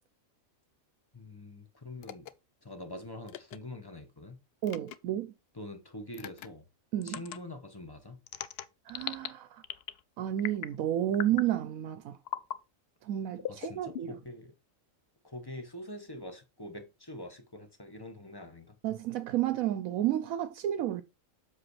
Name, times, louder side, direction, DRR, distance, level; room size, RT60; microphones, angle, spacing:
voice 1, 1.1-2.3 2.6-4.4 5.5-6.7 7.0-8.2 13.5-14.5 15.2-18.8, left 1 dB, 20° left, 1.0 m, -45 dB
sound 1, 2.0-2.3 3.3-3.6 4.6-5.0 6.1-6.5 7.0-7.4 8.3-9.3 9.6-10.0 10.4-10.8 11.1-11.5 12.2-12.6 13.4-14.3, left 10 dB, 60° left, 0.7 m, -39 dB
voice 2, 4.6-5.3 6.9-7.2 8.9-9.6 10.2-12.2 13.0-14.2 18.8-21.0, right 12 dB, 85° right, 1.0 m, -31 dB
7.7 x 6.5 x 3.1 m
omnidirectional pair, 1.4 m